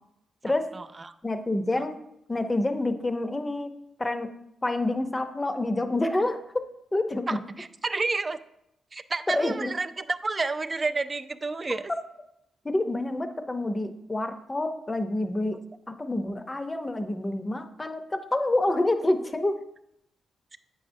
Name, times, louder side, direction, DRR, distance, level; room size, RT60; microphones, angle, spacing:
voice 1, 0.7-1.1 7.3-8.4 8.9-11.9 20.5-20.6, right 3 dB, 30° right, 11 dB, 0.4 m, -30 dB
voice 2, 1.2-1.9 2.3-3.7 4.0-4.3 4.6-6.6 6.9-7.4 9.3-9.7 12.6-15.6 15.9-19.6, left 2 dB, 20° left, 8 dB, 0.6 m, -27 dB
8.3 x 6.2 x 2.6 m, 0.80 s
cardioid pair, 85°, 0 cm